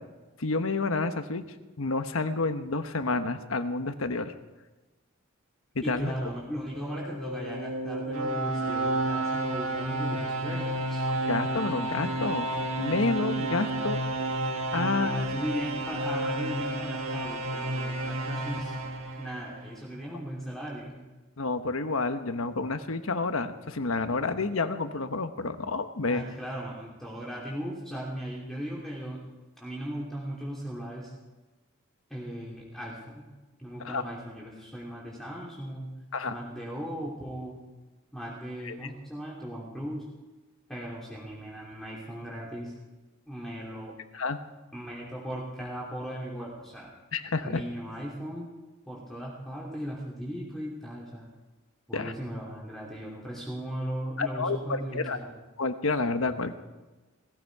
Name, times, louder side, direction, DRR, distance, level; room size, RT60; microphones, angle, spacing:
voice 1, 0.4-1.4 1.8-4.3 5.7-6.1 11.3-12.5 12.8-14.0 14.7-15.1 21.4-26.2 33.8-34.0 36.1-36.4 38.7-38.9 44.1-44.4 47.1-47.6 51.9-52.1 54.2-55.2 55.6-56.6, left 3 dB, 80° left, 9 dB, 1.1 m, -29 dB
voice 2, 5.8-11.1 14.7-18.8 19.2-20.9 26.1-29.2 29.6-31.1 32.1-33.3 33.6-35.9 36.3-37.6 38.1-40.1 40.7-42.7 43.3-43.9 44.7-46.9 47.4-48.5 48.9-51.3 51.9-55.3, equal, ahead, -5 dB, 3.0 m, -37 dB
sound 1, 6.6-19.7, right 2 dB, 85° right, 1.9 m, -31 dB
18.5 x 14.5 x 4.8 m, 1.2 s
head